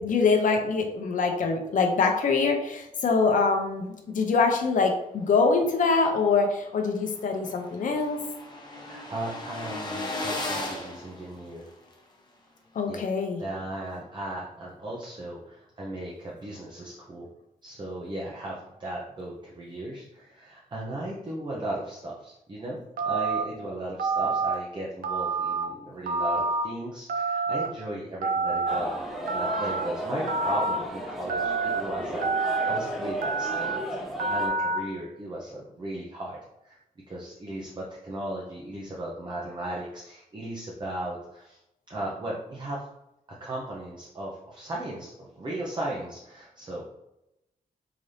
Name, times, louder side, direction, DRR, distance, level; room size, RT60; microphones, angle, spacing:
voice 1, 0.0-8.2 12.7-13.4, left 4 dB, 65° left, 4 dB, 0.6 m, -24 dB
sound 1, 6.4-6.5 6.8-6.9 7.1-11.9, left 2 dB, 30° left, 0.8 m, -36 dB
voice 2, 8.7-11.7 12.9-13.1 13.4-17.3 17.6-29.0 29.2-34.0 34.2-36.4 36.6-36.8 37.1-41.6 41.9-42.9 43.3-46.9, right 1 dB, 30° right, -4 dB, 0.7 m, -36 dB
Telephone, 23.0-23.4 24.0-24.5 25.0-25.6 26.1-26.6 27.1-27.7 28.2-28.8 29.3-29.8 30.3-30.8 31.3-31.8 32.2-32.8 33.2-33.8 34.2-34.8, right 4 dB, 75° right, 0.5 m, -27 dB
sound 2, 28.7-34.5, equal, ahead, 0.8 m, -34 dB
3.8 x 2.7 x 3.2 m, 0.88 s
wide cardioid pair, 120°, 15 cm